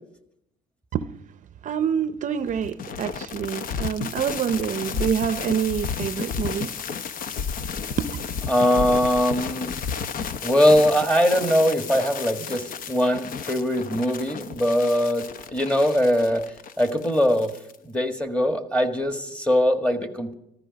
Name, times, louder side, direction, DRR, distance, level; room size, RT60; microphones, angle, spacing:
voice 1, 1.6-6.7 8.0-8.1, right 8 dB, 45° right, 12 dB, 0.6 m, -26 dB
sound 1, 2.5-17.8, left 6 dB, 55° left, 0.8 m, -32 dB
voice 2, 8.5-9.8 10.4-15.2 15.5-16.4 16.8-17.5 17.8-20.3, equal, 5° left, 5 dB, 1.5 m, -21 dB
14.5 x 12.5 x 5.2 m, 0.81 s
cardioid pair, 110°, 17 cm